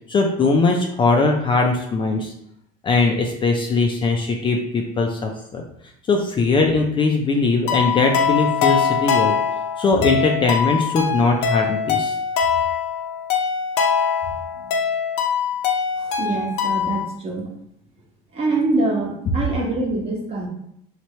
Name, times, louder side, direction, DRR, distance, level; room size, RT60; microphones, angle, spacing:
voice 1, 0.1-2.3 2.8-5.6 6.1-9.4 9.8-12.1, left 3 dB, 25° left, 1 dB, 0.4 m, -20 dB
sound 1, 7.7-17.1, left 6 dB, 85° left, 0.7 m, -22 dB
voice 2, 16.0-17.5 18.3-20.5, right 2 dB, 30° right, -1 dB, 1.0 m, -24 dB
3.1 x 2.8 x 4.3 m, 0.74 s
cardioid pair, 135°, 19 cm